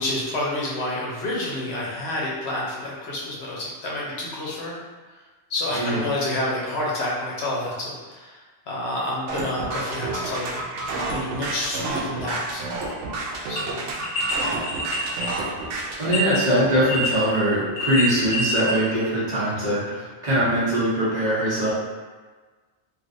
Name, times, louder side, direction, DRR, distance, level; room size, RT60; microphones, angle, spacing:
voice 1, 0.0-4.8 5.5-10.6 11.1-12.6 13.5-13.9, left 1 dB, 70° left, -5 dB, 0.9 m, -29 dB
sound 1, 9.3-16.1, right 3 dB, 85° right, 0.9 m, -30 dB
sound 2, 12.8-13.0 13.6-13.7 14.0-16.4 16.9-17.4 17.6-18.7 19.0-19.1, left 1 dB, 40° left, 0.9 m, -26 dB
voice 2, 16.0-21.7, right 1 dB, 40° right, -9 dB, 0.9 m, -22 dB
3.1 x 2.6 x 2.5 m, 1.3 s
omnidirectional pair, 1.2 m